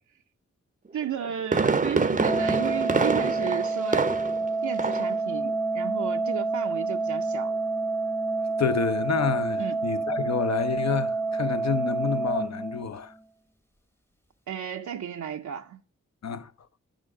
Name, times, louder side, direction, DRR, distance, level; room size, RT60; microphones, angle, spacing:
voice 1, 0.9-4.1 4.6-7.6 9.6-9.8 14.5-15.8, right 9 dB, 75° right, 0.5 m, -33 dB
Fireworks, 1.0-4.5 4.8-5.2 5.5-5.6, right 4 dB, 25° right, 0.5 m, -26 dB
Organ, 2.1-13.2, right 3 dB, 10° left, 0.8 m, -28 dB
voice 2, 8.6-13.1 16.2-16.5, left 6 dB, 60° left, 0.7 m, -28 dB
9.2 x 5.0 x 4.8 m
cardioid pair, 45°, 30 cm